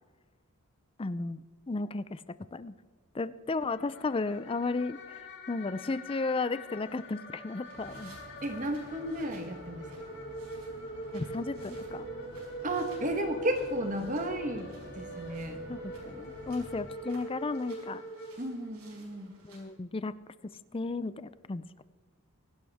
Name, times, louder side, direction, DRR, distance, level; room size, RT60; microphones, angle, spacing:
voice 1, 1.0-1.4 1.7-2.2 2.5-2.7 3.1-5.2 5.5-8.2 11.1-12.1 15.7-18.0 19.4-20.1 20.7-21.6, left 3 dB, 25° left, 15 dB, 0.4 m, -34 dB
sound 1, 3.7-19.0, right 1 dB, 50° left, 2.3 m, -43 dB
sound 2, 7.6-19.6, right 3 dB, 75° right, 5.3 m, -59 dB
sound 3, 7.7-16.9, equal, 55° right, 2.2 m, -51 dB
voice 2, 8.4-10.1 12.6-15.6 18.4-19.3, right 1 dB, 35° right, 6 dB, 1.2 m, -33 dB
24.0 x 12.0 x 3.5 m, 1.4 s
head